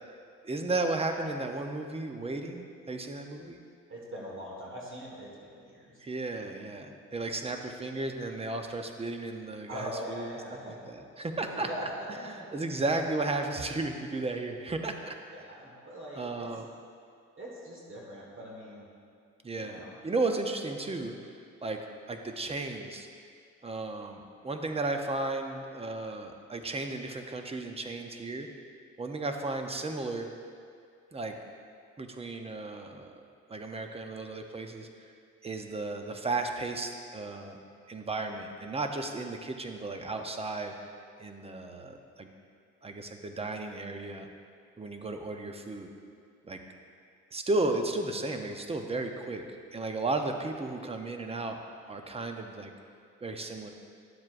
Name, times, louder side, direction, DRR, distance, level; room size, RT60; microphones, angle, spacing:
voice 1, 0.4-3.6 6.0-10.3 10.6-11.7 12.2-15.5 16.2-16.7 19.4-21.1 21.6-23.1 23.6-28.5 29.0-30.3 31.1-31.3 32.0-33.1 33.5-34.9 35.4-37.6 37.9-40.7 41.2-42.3 42.8-44.3 44.8-45.9 46.4-46.6 47.3-49.4 49.7-51.6 51.9-52.7 53.2-53.7, right 2 dB, 20° right, 5 dB, 0.6 m, -34 dB
voice 2, 3.9-5.8 9.7-10.8 11.5-12.5 15.3-16.5 17.4-18.8 19.6-19.9, equal, 45° right, -3 dB, 1.5 m, -41 dB
11.0 x 7.3 x 2.5 m, 2.3 s
cardioid pair, 90°, 30 cm